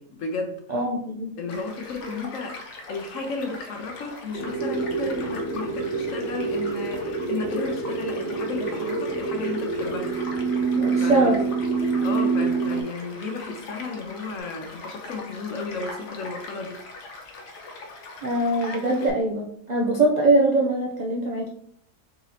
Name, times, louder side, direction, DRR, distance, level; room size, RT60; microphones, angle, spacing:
voice 1, 0.0-0.6 1.4-10.6 11.0-11.4 12.0-16.8, left 4 dB, 60° left, 4 dB, 0.9 m, -34 dB
voice 2, 0.7-1.3 10.7-11.4 18.2-21.5, right 2 dB, 75° right, -3 dB, 0.4 m, -22 dB
Child speech kid speaking / Stream / Car passing by, 1.5-19.1, left 2 dB, 85° left, 1.4 m, -41 dB
sound 1, 4.3-12.8, right 4 dB, 45° right, 1.4 m, -26 dB
sound 2, 6.7-11.0 14.3-14.4, right 1 dB, 45° left, 1.3 m, -41 dB
4.1 x 2.8 x 3.9 m, 0.64 s
omnidirectional pair, 1.7 m